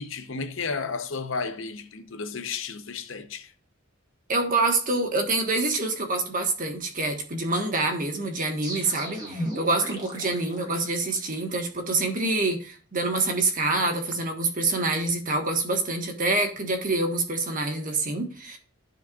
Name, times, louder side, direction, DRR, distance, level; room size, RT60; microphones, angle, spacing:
voice 1, 0.0-3.5, left 4 dB, 65° left, 0.8 m, -33 dB
voice 2, 4.3-18.6, right 2 dB, 40° right, 1.4 m, -26 dB
sound 1, 8.6-11.4, equal, 20° right, 1.6 m, -36 dB
13.5 x 4.6 x 2.4 m
head